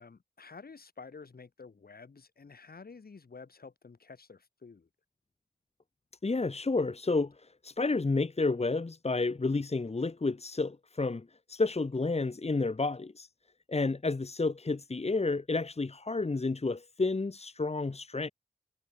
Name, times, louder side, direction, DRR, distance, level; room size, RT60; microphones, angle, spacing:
voice 1, 0.0-4.9, left 4 dB, 70° left, 7.4 m, -50 dB
voice 2, 6.2-13.3 13.7-18.3, left 3 dB, 40° left, 1.5 m, -30 dB
cardioid pair, 40°, 16 cm